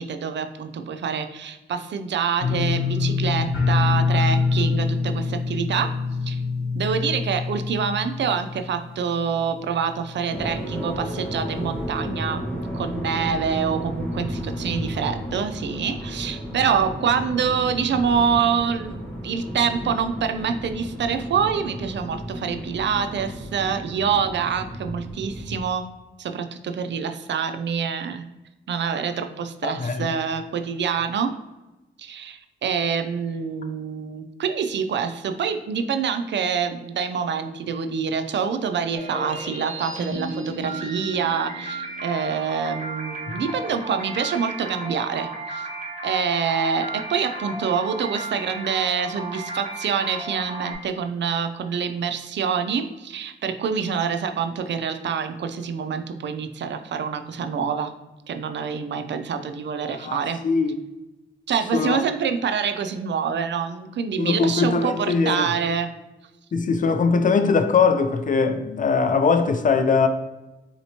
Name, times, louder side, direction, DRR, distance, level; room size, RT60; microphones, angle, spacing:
voice 1, 0.0-5.9 6.2-6.4 6.7-25.9 26.2-28.2 28.7-31.3 32.0-45.7 46.0-57.9 58.3-60.4 61.5-65.9, right 6 dB, 65° right, 0.4 m, -26 dB
sound 1, 2.4-9.3 9.6-10.1 10.5-10.6, left 4 dB, 85° left, 0.9 m, -24 dB
sound 2, 10.3-25.6, equal, 10° left, 1.0 m, -33 dB
voice 2, 29.6-30.1 60.0-60.8 61.7-62.0 64.2-65.5 66.5-70.1, left 5 dB, 40° left, 0.4 m, -21 dB
sound 3, 38.9-50.7, right 2 dB, 35° right, 0.9 m, -34 dB
4.1 x 2.9 x 2.8 m
cardioid pair, 85°, 20 cm